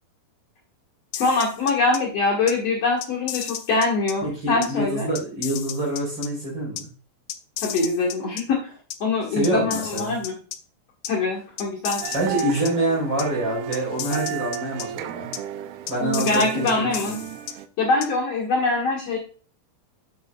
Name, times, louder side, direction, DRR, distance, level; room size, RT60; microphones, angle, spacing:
sound 1, 1.1-2.0 2.5-2.6 3.0-4.1 4.6-4.7 5.2-6.3 6.8-6.9 7.3-8.4 8.9-9.0 9.4-10.6 11.0-11.1 11.6-12.7 13.2-13.3 13.7-14.9 15.3-15.4 15.9-17.5 18.0-18.1, left 11 dB, 90° left, 1.7 m, -33 dB
voice 1, 1.2-5.1 7.6-8.7 9.0-10.3 11.1-12.3 16.2-17.2 17.8-19.2, left 3 dB, 50° left, -3 dB, 2.4 m, -23 dB
voice 2, 4.2-6.9 9.3-10.2 12.1-15.3 15.9-17.2, right 1 dB, 30° right, -2 dB, 4.3 m, -26 dB
sound 2, 12.0-17.7, right 12 dB, 85° right, 2.5 m, -33 dB
10.5 x 7.3 x 2.3 m, 0.39 s
omnidirectional pair, 4.2 m